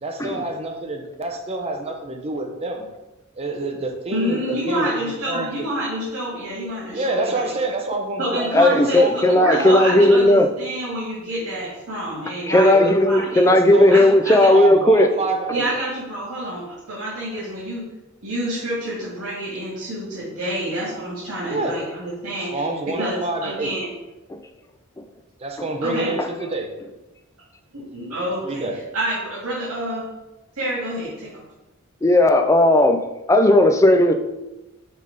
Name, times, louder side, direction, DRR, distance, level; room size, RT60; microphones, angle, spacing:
voice 1, 0.0-2.9 3.3-5.0 5.3-5.5 6.9-10.3 12.7-12.9 13.5-14.0 14.5-15.7 21.4-21.8 22.5-23.7 25.4-26.7 28.4-28.8, right 2 dB, 30° right, 3 dB, 0.8 m, -27 dB
voice 2, 4.1-7.5 8.2-13.5 13.9-14.5 15.1-15.2 15.5-17.9 18.2-23.9 25.8-26.1 27.7-28.7 28.9-30.1 30.6-31.3, right 1 dB, 85° right, -7 dB, 2.1 m, -28 dB
voice 3, 8.5-10.5 12.5-15.1 25.6-25.7 26.2-26.3 32.0-33.0 33.3-34.1, left 1 dB, 15° left, 6 dB, 0.4 m, -15 dB
5.4 x 4.0 x 5.2 m, 1.0 s
head